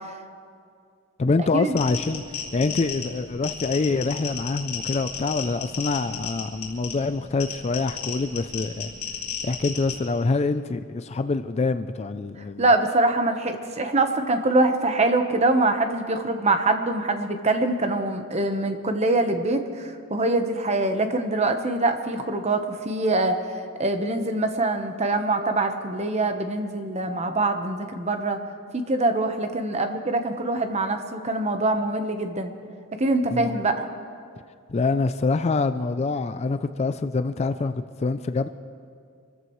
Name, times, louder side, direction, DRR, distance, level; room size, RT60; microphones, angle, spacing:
voice 1, 1.2-8.9 9.4-12.6 33.3-33.4 34.7-38.5, left 3 dB, 30° left, 10 dB, 0.3 m, -25 dB
sound 1, 1.8-10.0, left 7 dB, 85° left, 3.3 m, -34 dB
voice 2, 12.6-23.4 23.8-28.4 28.7-32.5 33.0-33.9, right 2 dB, 30° right, 6 dB, 1.0 m, -24 dB
26.5 x 14.0 x 3.1 m, 2.3 s
head